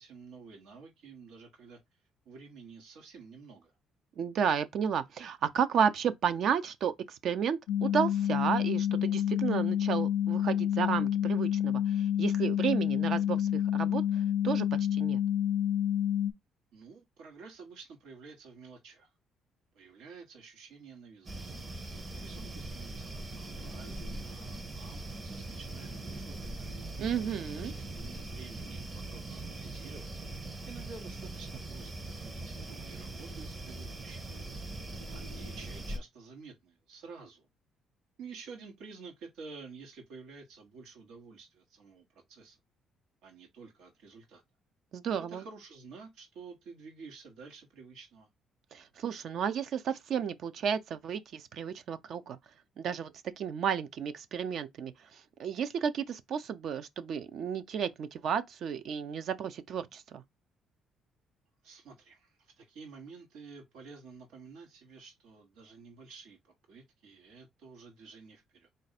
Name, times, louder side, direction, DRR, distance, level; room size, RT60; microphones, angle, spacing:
voice 1, 0.0-1.8 2.2-3.7 16.7-19.1 19.7-21.6 22.2-26.7 27.5-30.1 30.7-34.3 35.1-37.5 38.2-42.6 43.2-44.4 45.2-48.3 61.6-68.7, right 4 dB, 85° right, 1.3 m, -51 dB
voice 2, 4.2-11.8 12.2-15.2 27.0-27.7 44.9-45.4 48.7-52.4 52.8-60.2, right 7 dB, 60° right, 0.4 m, -32 dB
sound 1, 7.7-16.3, left 10 dB, 90° left, 0.3 m, -28 dB
sound 2, 21.3-36.0, right 2 dB, 25° right, 0.8 m, -41 dB
4.1 x 2.6 x 4.1 m
cardioid pair, 120°, 0 cm